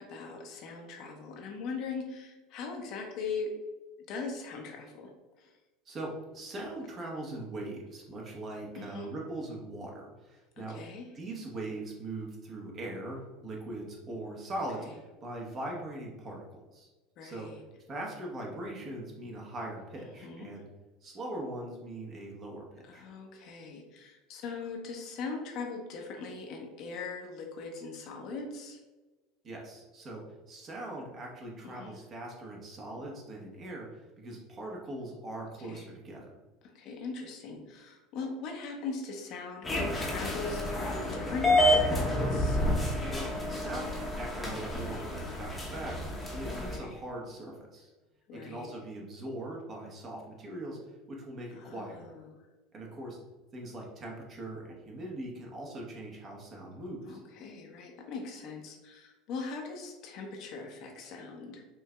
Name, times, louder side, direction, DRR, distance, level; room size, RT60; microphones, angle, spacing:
voice 1, 0.0-3.5 4.1-5.1 5.4-5.5 8.8-9.1 10.6-11.0 14.8-14.9 17.2-17.6 20.1-20.5 22.8-28.8 31.6-32.0 35.6-35.9 36.6-42.6 44.7-45.1 46.7-47.0 48.3-48.7 51.5-52.4 57.1-61.6, left 4 dB, 60° left, 2 dB, 0.7 m, -40 dB
voice 2, 5.9-10.8 11.1-16.9 17.2-17.5 17.9-20.7 21.0-23.1 29.4-30.2 30.5-36.3 43.1-47.9 48.3-50.8 51.1-52.1 52.7-53.2 53.5-57.2, right 1 dB, 40° right, -1 dB, 1.0 m, -41 dB
sound 1, 39.6-46.8, left 1 dB, 15° left, 0.8 m, -29 dB
4.5 x 2.7 x 2.2 m, 1.2 s
hypercardioid pair, 90°, 0 cm